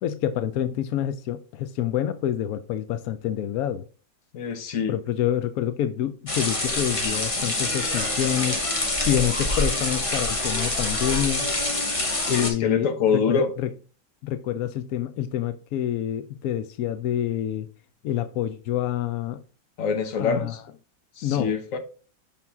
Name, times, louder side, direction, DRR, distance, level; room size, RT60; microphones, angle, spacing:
voice 1, 0.0-3.8 4.9-8.6 9.1-11.5 12.3-13.7 14.2-17.7 18.0-19.4 20.2-20.6 21.2-21.6, left 11 dB, 75° left, 0.8 m, -27 dB
voice 2, 4.3-4.9 12.3-13.5 19.8-20.6 21.2-21.8, left 6 dB, 50° left, 1.2 m, -25 dB
sound 1, 6.3-12.5, left 2 dB, 20° left, 1.0 m, -26 dB
5.9 x 5.7 x 3.5 m
omnidirectional pair, 2.1 m